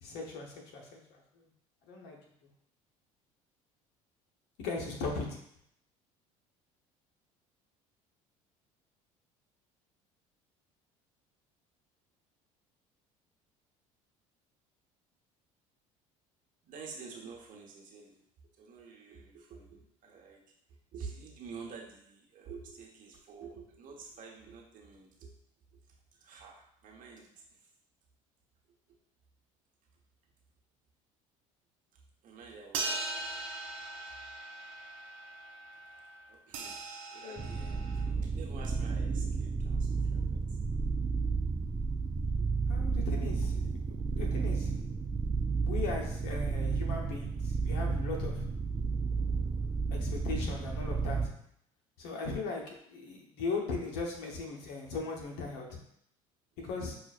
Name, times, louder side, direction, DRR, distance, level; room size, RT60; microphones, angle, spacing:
voice 1, 0.0-1.5 1.9-2.2 4.6-5.4 37.2-37.5 42.7-44.7 45.6-48.5 49.9-51.3 52.0-55.7 56.6-57.0, left 3 dB, 70° left, 0 dB, 1.0 m, -38 dB
voice 2, 16.6-18.2 18.6-20.4 20.9-25.3 25.7-25.8 26.1-27.7 31.9-33.4 36.3-36.8 37.1-40.6 42.4-42.5, right 5 dB, 50° right, 0 dB, 1.0 m, -49 dB
sound 1, 32.7-38.0, right 3 dB, 80° right, 0.6 m, -40 dB
sound 2, 37.4-51.3, right 4 dB, 20° right, 0.3 m, -32 dB
5.7 x 2.5 x 2.4 m, 0.70 s
hypercardioid pair, 70°, 17 cm